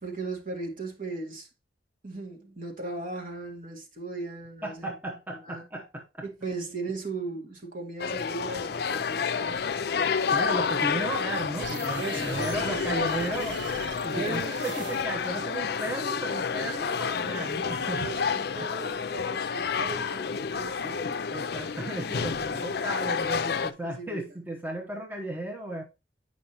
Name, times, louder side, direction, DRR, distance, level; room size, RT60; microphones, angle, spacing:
voice 1, 0.0-1.5 2.0-4.9 5.4-5.6 6.2-9.8 12.0-13.0 14.1-14.6 15.8-15.9 17.3-17.5 17.9-21.2 23.8-24.2, right 3 dB, 50° right, 2.1 m, -37 dB
voice 2, 4.6-6.3 9.9-18.2 18.6-18.7 20.8-20.9 21.3-25.8, right 1 dB, 10° right, 1.0 m, -35 dB
sound 1, 8.0-23.7, left 6 dB, 60° left, 0.4 m, -30 dB
sound 2, 11.5-15.4, right 6 dB, 75° right, 0.5 m, -40 dB
8.6 x 5.3 x 2.9 m
head